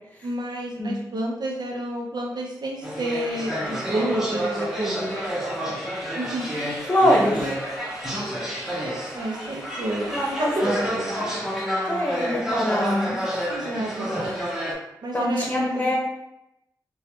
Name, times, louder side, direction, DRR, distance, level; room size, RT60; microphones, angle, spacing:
voice 1, 0.2-6.5 9.1-11.1 13.5-14.3 15.0-15.9, right 1 dB, 65° right, -1 dB, 0.7 m, -30 dB
sound 1, 2.8-14.7, equal, 5° right, 1.0 m, -29 dB
voice 2, 6.9-7.4 10.1-10.5 11.1-11.3 11.9-13.2 15.1-15.9, equal, 20° left, -2 dB, 1.0 m, -23 dB
3.0 x 2.3 x 2.9 m, 0.88 s
cardioid pair, 50°, 8 cm